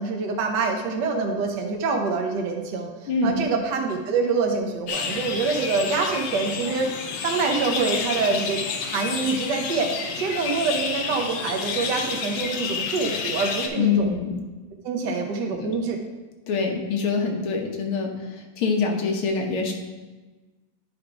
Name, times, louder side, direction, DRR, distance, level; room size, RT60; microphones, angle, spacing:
voice 1, 0.0-2.9 3.2-6.9 7.2-9.9 10.2-14.1 14.8-16.0, right 4 dB, 60° right, 2 dB, 1.4 m, -25 dB
voice 2, 3.1-3.4 13.8-14.4 15.5-15.7 16.5-19.7, left 4 dB, 85° left, 1 dB, 1.9 m, -25 dB
sound 1, 4.9-13.7, left 5 dB, 70° left, 1.3 m, -30 dB
10.0 x 3.5 x 4.7 m, 1.2 s
omnidirectional pair, 2.3 m